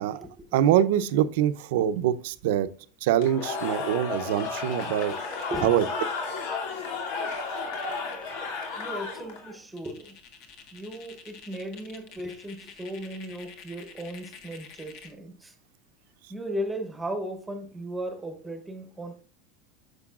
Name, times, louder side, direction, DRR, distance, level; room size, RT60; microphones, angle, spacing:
voice 1, 0.0-0.6 5.5-5.7 7.9-8.0 8.7-10.2 10.7-15.6 16.3-19.2, right 1 dB, 5° right, 0.9 m, -36 dB
voice 2, 0.5-2.7 3.0-5.1 5.6-5.8, right 11 dB, 70° right, 0.6 m, -24 dB
Cheering / Crowd, 3.2-9.5, left 4 dB, 65° left, 2.5 m, -33 dB
sound 1, 4.4-5.8 6.9-7.0 7.1-8.8 9.2-9.3 9.8-15.2, left 6 dB, 45° left, 1.4 m, -49 dB
9.8 x 6.8 x 2.4 m
supercardioid pair, 165°, 0 cm